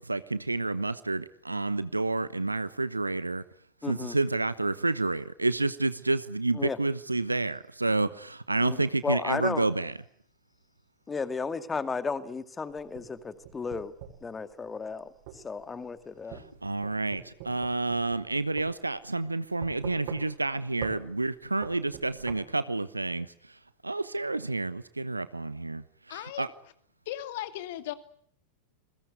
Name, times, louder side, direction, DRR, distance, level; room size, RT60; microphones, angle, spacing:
voice 1, 0.0-3.4 3.9-9.9 16.6-23.3 23.8-25.8 26.4-26.5, right 2 dB, 80° right, 1.1 m, -29 dB
voice 2, 3.8-4.2 6.5-6.8 8.6-9.7 11.1-13.9 14.2-16.4, left 4 dB, 15° left, 2.2 m, -34 dB
sound 1, 12.8-14.3 15.3-15.4 16.3-18.3 18.6-18.7 19.6-20.5 20.8-21.0 21.6-22.4, right 10 dB, 50° right, 6.6 m, -42 dB
voice 3, 26.1-26.7 27.1-27.9, left 14 dB, 50° left, 2.5 m, -37 dB
28.0 x 22.0 x 8.1 m
figure-of-eight pair, 90°, 0 cm